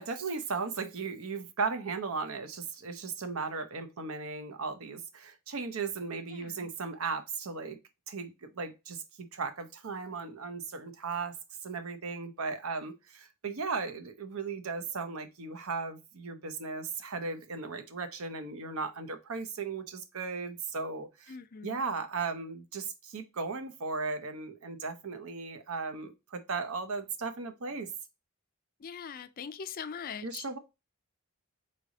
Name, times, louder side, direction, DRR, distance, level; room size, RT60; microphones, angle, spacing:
voice 1, 0.0-7.8 8.1-11.3 11.6-21.3 21.6-27.9 30.2-30.6, right 4 dB, 70° right, 0.7 m, -36 dB
voice 2, 6.3-6.7 21.3-21.9 28.8-30.5, left 6 dB, 40° left, 0.4 m, -42 dB
4.0 x 3.4 x 3.6 m
head